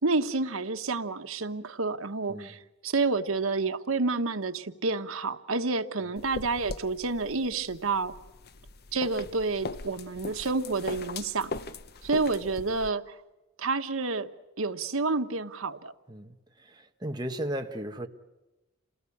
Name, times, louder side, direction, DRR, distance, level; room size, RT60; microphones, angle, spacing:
voice 1, 0.0-8.1 8.9-11.5 12.0-13.2 13.6-14.3 14.6-15.9, right 3 dB, 85° right, 1.3 m, -29 dB
sound 1, 6.2-12.9, left 3 dB, 50° left, 0.8 m, -40 dB
voice 2, 16.1-18.1, right 1 dB, 20° right, 1.4 m, -36 dB
28.5 x 19.0 x 8.6 m
head